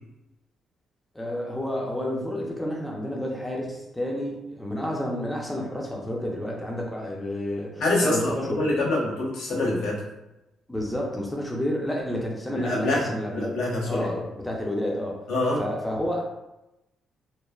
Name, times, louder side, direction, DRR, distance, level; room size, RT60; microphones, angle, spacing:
voice 1, 1.1-8.7 10.7-13.5 13.9-15.2 15.6-16.2, left 1 dB, 10° left, -2 dB, 0.6 m, -30 dB
voice 2, 7.8-10.0 12.5-13.1 13.3-14.1 15.3-15.6, left 2 dB, 85° left, -4 dB, 0.9 m, -25 dB
3.1 x 2.1 x 2.3 m, 0.93 s
cardioid pair, 90°, 0 cm